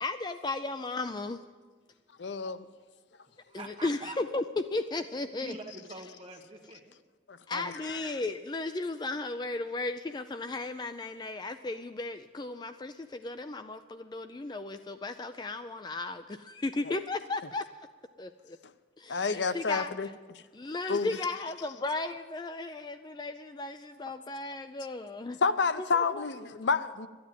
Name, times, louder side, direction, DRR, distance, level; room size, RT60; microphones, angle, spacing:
voice 1, 0.0-1.5 3.5-5.6 7.5-17.7 18.2-18.6 19.0-20.1 20.5-25.4 25.8-26.3, left 2 dB, 25° left, 10 dB, 0.4 m, -35 dB
voice 2, 2.2-2.7 7.3-7.6 19.1-20.1 20.9-21.2 25.4-27.1, left 4 dB, 90° left, 12 dB, 0.7 m, -29 dB
voice 3, 3.5-4.2 5.4-7.0, right 2 dB, 35° right, 0 dB, 1.8 m, -44 dB
13.0 x 9.5 x 9.2 m, 1.4 s
head